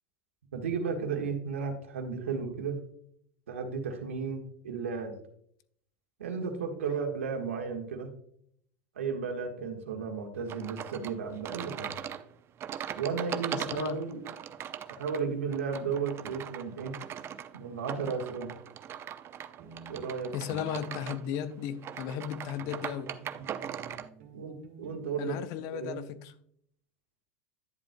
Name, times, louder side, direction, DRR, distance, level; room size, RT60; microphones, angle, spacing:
voice 1, 0.5-2.8 3.5-5.1 6.2-8.1 8.9-11.9 12.9-14.2 14.9-16.9 17.5-18.5 19.9-20.3 24.3-25.4 25.7-26.1, right 5 dB, 85° right, 1.5 m, -34 dB
sound 1, 10.5-24.1, right 9 dB, 40° right, 0.6 m, -40 dB
voice 2, 13.5-14.0 20.3-23.1 25.2-26.3, left 10 dB, 60° left, 0.7 m, -35 dB
sound 2, 16.1-16.4 19.3-19.4 19.6-21.9 22.6-25.6, right 5 dB, 70° right, 2.0 m, -51 dB
11.0 x 7.6 x 2.2 m
hypercardioid pair, 95°, 7 cm